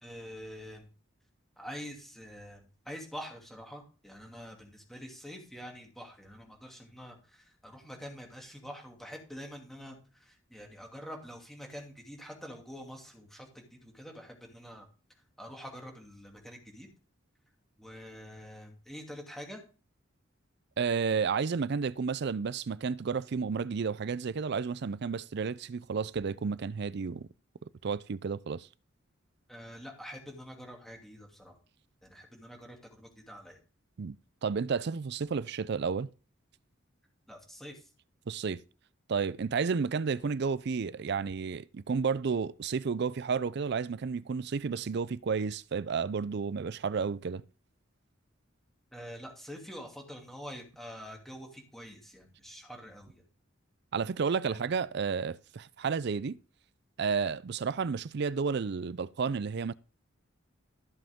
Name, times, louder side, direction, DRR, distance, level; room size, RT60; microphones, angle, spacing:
voice 1, 0.0-0.9 1.6-14.9 15.4-16.9 17.8-19.6 29.5-31.6 32.0-33.6 37.3-37.9 48.9-53.2 54.5-54.6, equal, ahead, 2.7 m, -46 dB
voice 2, 20.8-27.3 27.8-28.7 34.0-34.2 34.4-36.1 38.3-38.6 39.1-47.4 53.9-56.4 57.0-59.7, right 5 dB, 60° right, 0.4 m, -31 dB
14.0 x 7.8 x 3.6 m
head